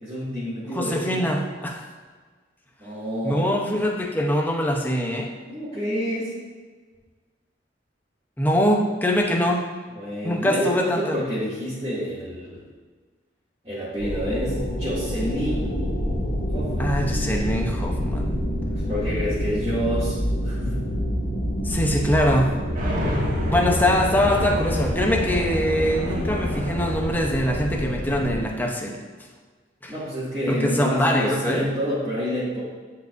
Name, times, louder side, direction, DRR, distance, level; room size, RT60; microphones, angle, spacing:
voice 1, 0.0-1.2 2.8-3.5 5.5-6.3 9.9-12.6 13.6-15.8 16.5-17.0 18.9-20.2 20.4-20.9 29.9-32.6, equal, 30° right, -12 dB, 2.2 m, -28 dB
voice 2, 0.7-1.9 3.2-5.3 8.4-9.6 10.2-11.2 16.8-18.3 21.6-22.6 23.5-29.0 29.8-29.9 30.5-31.7, equal, 10° left, 0 dB, 0.8 m, -23 dB
sound 1, 14.0-28.4, equal, 80° left, 1.8 m, -27 dB
sound 2, 22.7-27.8, equal, 45° right, 1.4 m, -29 dB
10.0 x 5.2 x 2.6 m, 1.5 s
head